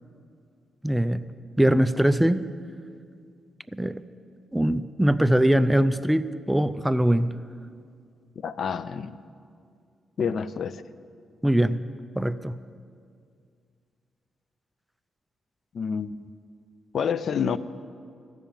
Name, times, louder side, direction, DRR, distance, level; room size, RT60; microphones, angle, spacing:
voice 1, 0.8-1.2 1.6-2.4 3.7-4.0 4.5-7.4 11.4-11.8 12.2-12.6, right 1 dB, 5° right, 11 dB, 0.4 m, -22 dB
voice 2, 8.4-9.2 10.2-10.8 15.7-16.2 16.9-17.6, left 6 dB, 60° left, 15 dB, 0.4 m, -28 dB
14.5 x 7.1 x 9.0 m, 2.3 s
cardioid pair, 105°, 0 cm